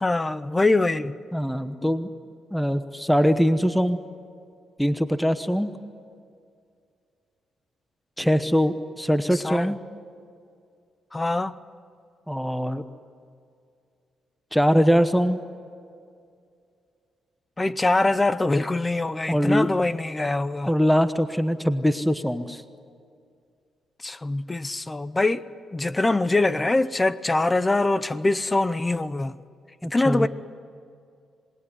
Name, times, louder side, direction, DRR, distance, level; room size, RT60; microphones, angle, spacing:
voice 1, 0.0-1.2 9.4-9.7 11.1-11.6 17.6-20.7 24.0-25.5 25.7-29.4 29.9-30.3, left 2 dB, 20° left, 0.7 m, -23 dB
voice 2, 1.3-2.1 2.5-4.0 4.8-5.7 8.2-9.8 12.3-12.8 14.5-15.4 19.3-19.7 20.6-22.6 29.8-30.3, equal, ahead, 1.1 m, -22 dB
26.5 x 20.5 x 9.8 m
cardioid pair, 105°, 0 cm